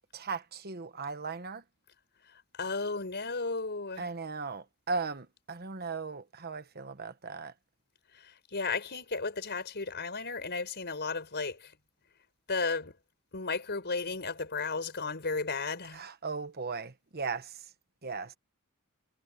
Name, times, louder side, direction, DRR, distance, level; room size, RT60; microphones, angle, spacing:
voice 1, 0.1-1.6 4.0-7.5 15.9-17.5 18.0-18.3, right 4 dB, 45° right, 1.2 m, -37 dB
voice 2, 2.6-4.1 8.2-11.7 12.5-12.9 13.3-16.0, left 4 dB, 50° left, 5.1 m, -34 dB
head